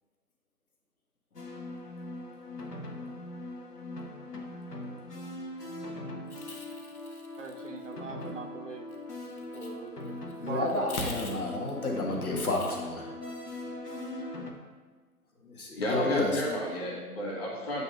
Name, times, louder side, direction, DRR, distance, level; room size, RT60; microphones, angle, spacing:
sound 1, 1.4-14.5, left 1 dB, 90° left, 0.9 m, -41 dB
voice 1, 7.4-8.9 9.5-10.1 10.5-11.0, right 4 dB, 50° right, 4 dB, 0.6 m, -40 dB
voice 2, 10.4-13.1 15.4-16.4, left 2 dB, 65° left, -1 dB, 1.3 m, -31 dB
voice 3, 15.7-17.8, left 1 dB, 40° left, -3 dB, 1.8 m, -32 dB
8.1 x 2.7 x 4.9 m, 1.4 s
figure-of-eight pair, 135°, 46 cm